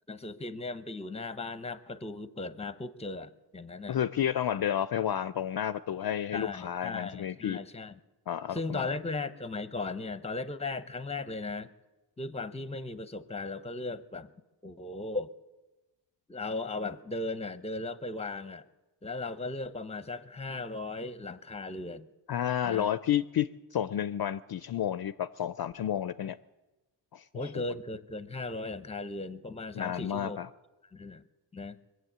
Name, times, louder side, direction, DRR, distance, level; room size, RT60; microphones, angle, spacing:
voice 1, 0.1-4.0 6.3-8.0 8.5-11.7 12.2-14.3 14.6-15.3 16.3-18.6 19.0-22.1 22.6-22.9 27.3-30.4 30.9-31.2 31.5-31.8, left 3 dB, 15° left, 14 dB, 0.7 m, -37 dB
voice 2, 3.9-7.6 8.3-9.0 22.3-26.4 27.1-27.6 29.7-30.5, left 10 dB, 55° left, 15 dB, 0.5 m, -31 dB
22.0 x 7.9 x 7.9 m, 1.1 s
cardioid pair, 80°, 47 cm